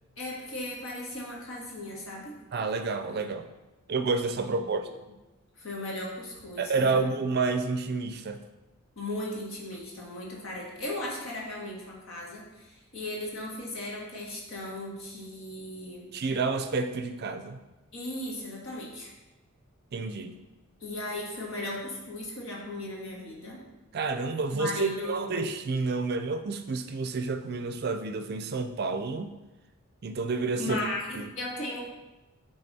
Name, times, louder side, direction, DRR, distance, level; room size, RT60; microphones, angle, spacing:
voice 1, 0.2-2.4 4.4-4.8 5.6-7.0 9.0-16.1 17.9-19.1 20.8-23.6 24.5-25.4 30.6-31.8, left 1 dB, 70° left, -3 dB, 1.5 m, -37 dB
voice 2, 2.5-3.5 3.9-4.9 6.6-8.4 16.1-17.6 19.9-20.4 23.9-29.3 30.0-30.8 31.1-31.3, right 4 dB, 50° right, 8 dB, 0.4 m, -29 dB
6.8 x 3.4 x 4.2 m, 1.0 s
head